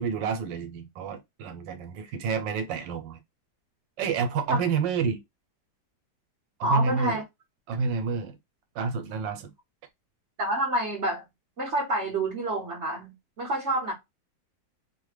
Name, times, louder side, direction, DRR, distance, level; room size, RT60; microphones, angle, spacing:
voice 1, 0.0-3.2 4.0-5.2 6.6-7.2 7.7-8.4 8.7-9.5, right 5 dB, 85° right, 1.3 m, -29 dB
voice 2, 6.6-7.2 10.4-11.2 11.6-13.9, right 1 dB, 55° right, 0.8 m, -28 dB
3.0 x 2.1 x 3.1 m
omnidirectional pair, 2.0 m